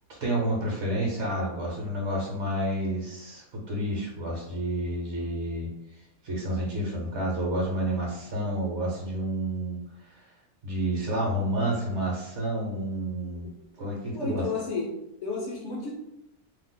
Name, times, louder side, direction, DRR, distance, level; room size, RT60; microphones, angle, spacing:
voice 1, 0.2-10.3 10.6-13.5 13.8-14.5, right 1 dB, 60° right, -2 dB, 0.9 m, -30 dB
voice 2, 14.1-14.9 15.2-15.9, left 4 dB, 65° left, -1 dB, 0.8 m, -31 dB
2.6 x 2.0 x 3.7 m, 0.87 s
omnidirectional pair, 1.5 m